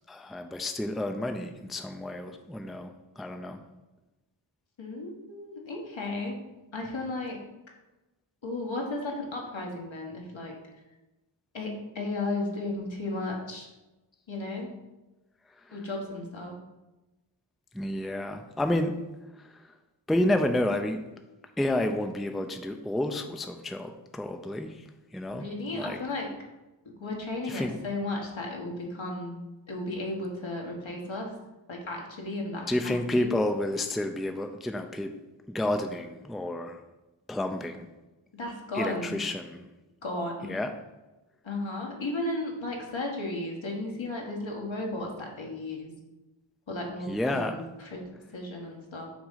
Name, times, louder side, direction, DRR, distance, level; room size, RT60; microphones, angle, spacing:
voice 1, 0.1-3.6 15.7-15.8 17.7-19.0 19.4-19.5 20.1-21.0 21.6-24.8 25.1-25.5 25.7-26.0 27.5-27.7 32.7-35.1 35.5-36.8 37.3-37.9 38.7-39.7 40.4-40.7 47.1-47.6, left 1 dB, ahead, 6 dB, 0.4 m, -30 dB
voice 2, 4.8-6.4 6.7-7.4 8.4-10.6 11.5-13.7 14.3-14.7 15.7-16.5 25.3-26.3 26.8-29.4 29.7-31.3 31.7-33.3 38.3-39.2 40.0-40.6 41.4-45.9 46.7-48.0 48.3-49.1, left 2 dB, 75° left, 0 dB, 1.5 m, -34 dB
6.0 x 3.7 x 5.6 m, 1.1 s
wide cardioid pair, 65°, 47 cm